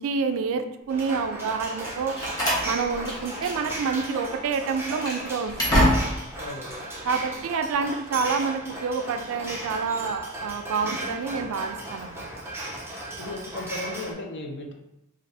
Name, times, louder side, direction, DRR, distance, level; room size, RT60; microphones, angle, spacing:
voice 1, 0.0-2.1 2.6-5.9 7.0-12.3, right 5 dB, 65° right, 8 dB, 0.3 m, -28 dB
sound 1, 0.9-14.1, right 1 dB, 10° right, 0.5 m, -36 dB
Slam, 1.8-3.8 4.1-4.3 4.8-6.4, equal, 20° left, 0.8 m, -26 dB
voice 2, 6.4-6.9 13.2-14.7, left 2 dB, 55° left, 1 dB, 0.5 m, -35 dB
2.6 x 2.5 x 3.3 m, 0.86 s
head